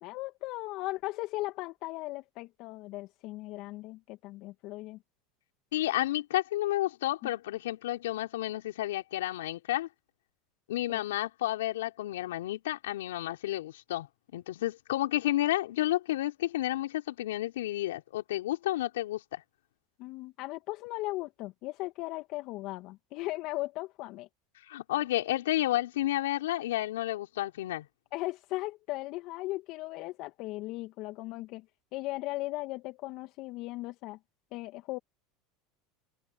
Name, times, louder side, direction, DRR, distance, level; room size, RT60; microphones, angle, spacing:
voice 1, 0.0-5.0 7.2-7.3 10.9-11.0 20.0-24.3 28.1-31.6 31.9-34.2 34.5-35.0, left 19 dB, 60° left, 2.1 m, -37 dB
voice 2, 5.7-9.9 10.7-14.1 14.3-19.4 24.7-27.9, left 15 dB, 80° left, 4.3 m, -31 dB
hypercardioid pair, 85°, 0 cm